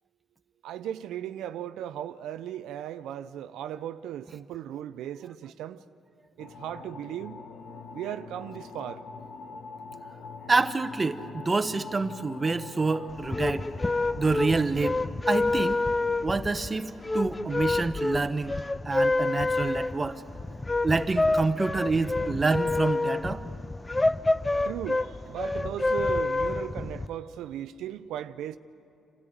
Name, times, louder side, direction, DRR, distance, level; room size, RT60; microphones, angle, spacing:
voice 1, 0.6-5.8 6.4-7.4 7.9-9.0 24.6-28.6, right 11 dB, 85° right, 0.4 m, -37 dB
sound 1, 6.4-14.7, left 4 dB, 70° left, 1.4 m, -44 dB
voice 2, 10.5-13.7 14.2-15.0 15.3-15.8 16.2-18.6 18.8-20.2 20.8-23.4, right 3 dB, 25° right, 1.0 m, -27 dB
sound 2, 13.1-27.1, left 2 dB, 20° left, 0.5 m, -28 dB
27.0 x 13.5 x 9.3 m
cardioid pair, 90°, 0 cm